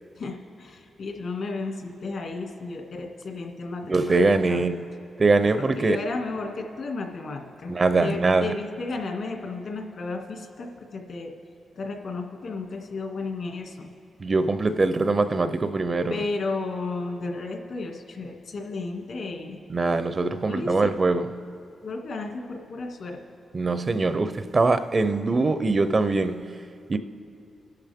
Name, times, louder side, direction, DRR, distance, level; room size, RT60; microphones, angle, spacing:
voice 1, 0.2-4.2 4.5-4.7 5.6-11.3 11.8-13.9 16.1-19.6 20.5-20.9 21.8-23.2, left 3 dB, 65° left, 2.0 m, -33 dB
voice 2, 3.9-4.8 5.2-6.0 7.7-8.5 14.2-16.2 19.7-21.5 23.5-27.0, right 3 dB, 35° right, 0.5 m, -23 dB
26.5 x 11.5 x 3.6 m
cardioid pair, 110°, 0 cm